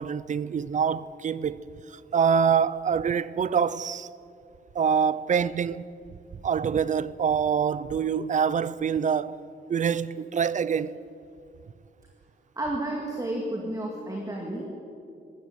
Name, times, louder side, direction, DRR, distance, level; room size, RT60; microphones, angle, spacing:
voice 1, 0.0-4.1 4.7-5.8 6.4-9.4 9.7-11.0, right 7 dB, 40° right, 0.6 m, -25 dB
voice 2, 12.6-14.7, right 1 dB, 20° right, 2.3 m, -31 dB
19.5 x 15.5 x 9.7 m
wide cardioid pair, 180°, 19 cm